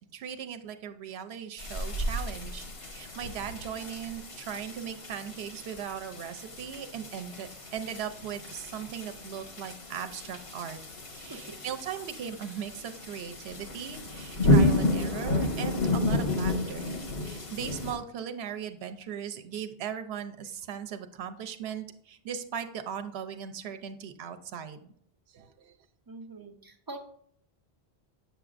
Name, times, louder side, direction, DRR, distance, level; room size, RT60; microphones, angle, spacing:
voice 1, 0.1-10.8 11.1-17.0 17.2-24.8 25.3-25.7, right 8 dB, 85° right, 8 dB, 0.8 m, -38 dB
sound 1, 1.6-17.9, left 2 dB, 85° left, 1.5 m, -31 dB
voice 2, 26.1-27.0, right 2 dB, 30° right, 3 dB, 0.5 m, -43 dB
6.8 x 6.8 x 2.4 m, 0.67 s
omnidirectional pair, 1.0 m